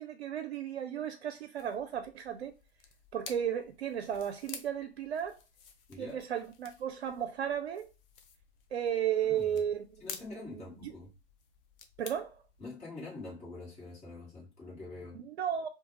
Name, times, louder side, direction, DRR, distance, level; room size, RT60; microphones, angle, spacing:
voice 1, 0.0-2.5 3.1-5.4 6.0-7.9 8.7-10.9 12.0-12.4 15.1-15.7, right 9 dB, 75° right, 0.5 m, -34 dB
sound 1, 1.6-12.7, left 6 dB, 60° left, 0.7 m, -52 dB
voice 2, 5.9-6.2 9.3-9.6 10.0-11.1 12.6-15.2, left 2 dB, 20° left, 1.4 m, -45 dB
2.4 x 2.4 x 3.0 m
figure-of-eight pair, 105°, 32 cm